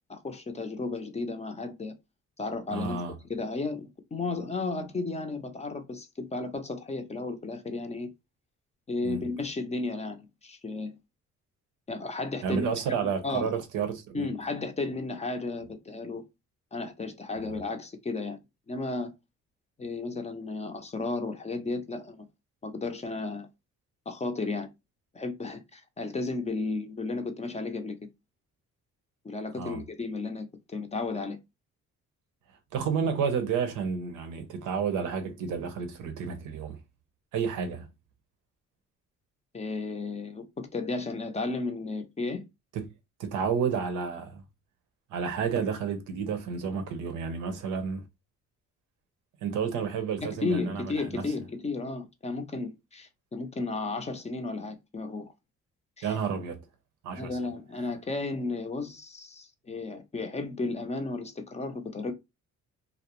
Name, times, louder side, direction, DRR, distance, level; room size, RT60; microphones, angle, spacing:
voice 1, 0.1-1.9 2.4-3.0 3.3-8.1 8.9-11.0 11.9-12.7 13.0-13.5 14.1-16.2 16.7-18.4 18.7-19.1 19.8-22.3 22.6-23.5 24.1-24.7 25.1-28.0 29.2-31.4 39.5-42.4 50.2-55.3 56.0-56.1 57.2-62.1, left 3 dB, 20° left, 0.5 m, -34 dB
voice 2, 2.7-3.2 9.0-9.3 12.4-14.3 17.4-17.6 29.6-29.9 32.7-36.8 37.3-37.9 42.7-42.9 43.2-44.4 45.1-48.0 49.4-51.2 56.0-56.6 57.0-57.4, right 6 dB, 90° right, 0.6 m, -31 dB
2.4 x 2.0 x 2.9 m
cardioid pair, 90°, 30 cm